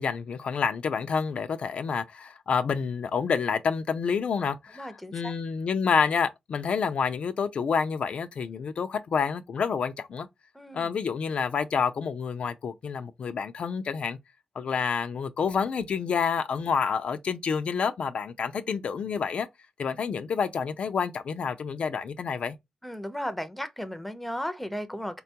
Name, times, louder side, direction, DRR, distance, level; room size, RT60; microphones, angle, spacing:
voice 1, 0.0-10.3 10.7-14.2 14.6-19.5 19.8-22.6, left 6 dB, 70° left, 0.3 m, -28 dB
voice 2, 4.8-5.3 10.5-10.9 19.8-20.0 22.8-25.2, equal, 5° left, 0.6 m, -35 dB
3.6 x 2.2 x 2.7 m
cardioid pair, 80°, 2 cm